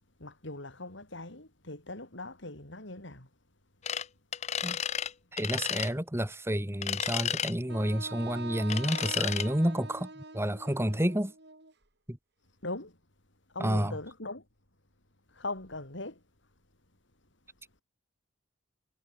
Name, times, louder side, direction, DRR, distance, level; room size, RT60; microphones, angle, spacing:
voice 1, 0.2-3.3 12.6-13.0 13.5-14.4 15.3-16.2, left 2 dB, 65° left, 5.0 m, -40 dB
sound 1, 3.8-4.0 4.3-5.1 5.4-5.9 6.8-7.5 8.7-9.5, left 9 dB, 35° left, 0.5 m, -32 dB
voice 2, 5.3-11.3 12.1-12.2 13.6-14.0, equal, 15° right, 2.3 m, -30 dB
Wind instrument woodwind instrument, 7.7-11.7, right 3 dB, 60° right, 6.0 m, -44 dB
head